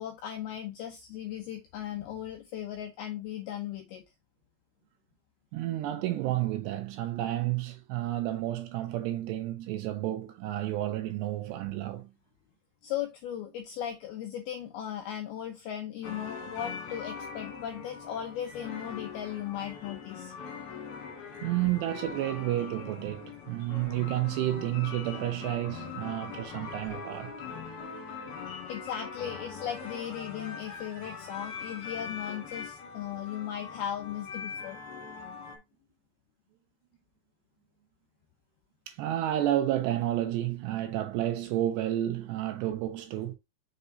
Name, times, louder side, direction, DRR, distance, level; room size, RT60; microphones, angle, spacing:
voice 1, 0.0-4.1 12.8-20.3 28.7-34.8, left 10 dB, 80° left, 2.2 m, -37 dB
voice 2, 5.5-12.1 21.4-27.4 38.9-43.3, right 14 dB, 80° right, 2.6 m, -31 dB
sound 1, 16.0-35.6, left 5 dB, 55° left, 3.0 m, -42 dB
6.8 x 5.4 x 2.7 m
omnidirectional pair, 5.5 m